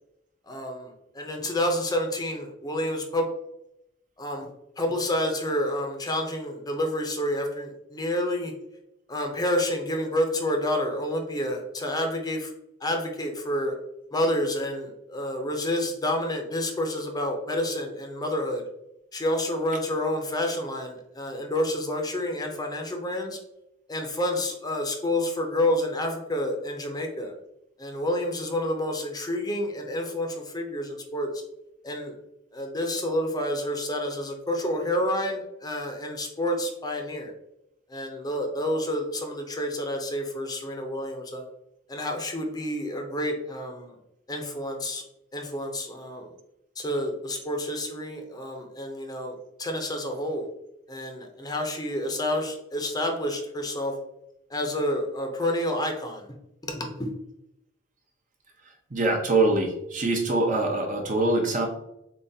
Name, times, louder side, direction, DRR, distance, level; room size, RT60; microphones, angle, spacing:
voice 1, 0.5-0.9 1.1-3.3 4.2-4.5 4.8-8.5 9.1-12.5 12.8-13.7 14.1-18.6 19.1-23.4 23.9-27.3 27.8-30.3 30.5-31.3 31.8-32.1 32.5-37.3 37.9-41.5 41.9-43.9 44.3-45.0 45.3-46.3 46.8-50.5 50.9-53.9 54.5-56.3 56.6-57.1, left 1 dB, 20° left, 2 dB, 0.7 m, -29 dB
voice 2, 58.9-61.7, right 2 dB, 45° right, 2 dB, 0.8 m, -24 dB
7.1 x 2.4 x 2.8 m, 0.83 s
head